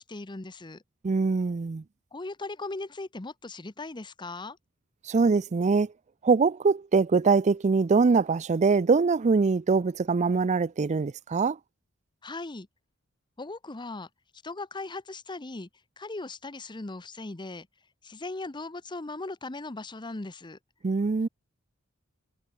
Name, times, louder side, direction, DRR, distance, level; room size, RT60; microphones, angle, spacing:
voice 1, 0.1-0.8 2.1-4.6 12.2-12.7 13.4-14.1 14.4-15.7 16.0-17.7 18.0-20.6, left 2 dB, 20° left, 0.8 m, -38 dB
voice 2, 1.0-1.8 5.1-5.9 6.2-11.6 20.8-21.3, right 4 dB, 35° right, 0.4 m, -23 dB
head